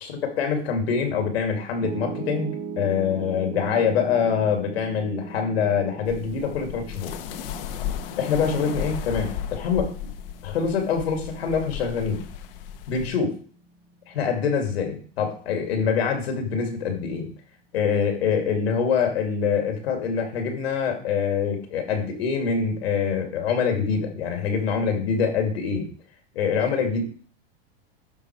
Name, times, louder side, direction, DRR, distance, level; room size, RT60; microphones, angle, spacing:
voice 1, 0.0-7.1 8.2-10.1 10.4-12.2 12.9-13.4 14.1-17.3 17.7-25.9 26.3-27.0, left 6 dB, 85° left, 5 dB, 2.7 m, -25 dB
Piano, 1.8-14.0, right 4 dB, 20° right, 0.8 m, -39 dB
sound 1, 6.0-13.1, left 9 dB, 65° left, 1.1 m, -35 dB
11.0 x 4.0 x 4.8 m, 0.42 s
supercardioid pair, 135°, 30 cm